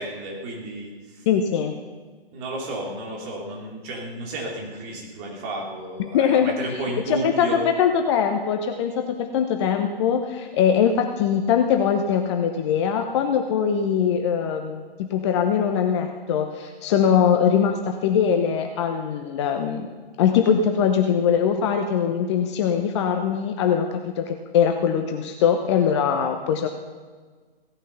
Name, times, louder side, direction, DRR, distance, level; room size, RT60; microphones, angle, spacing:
voice 1, 0.0-1.3 2.3-7.6, right 1 dB, 25° right, -1 dB, 3.5 m, -32 dB
voice 2, 1.3-1.7 6.1-6.5 7.1-19.9 20.2-26.7, left 7 dB, 25° left, 5 dB, 0.9 m, -22 dB
17.0 x 12.5 x 5.7 m, 1.4 s
figure-of-eight pair, 135°, 31 cm